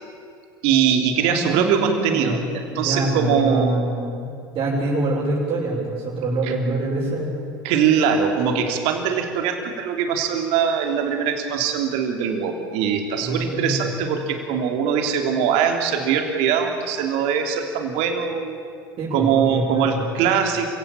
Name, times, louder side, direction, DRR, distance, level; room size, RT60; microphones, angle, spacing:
voice 1, 0.6-2.4 2.7-3.8 6.4-6.5 7.6-18.6 19.1-20.7, right 7 dB, 60° right, 4 dB, 3.3 m, -22 dB
voice 2, 1.2-2.5 2.7-4.3 4.5-7.5 13.2-13.8 19.0-20.1, right 1 dB, 40° right, -7 dB, 7.0 m, -25 dB
27.5 x 16.5 x 9.0 m, 2.3 s
hypercardioid pair, 80°, 12 cm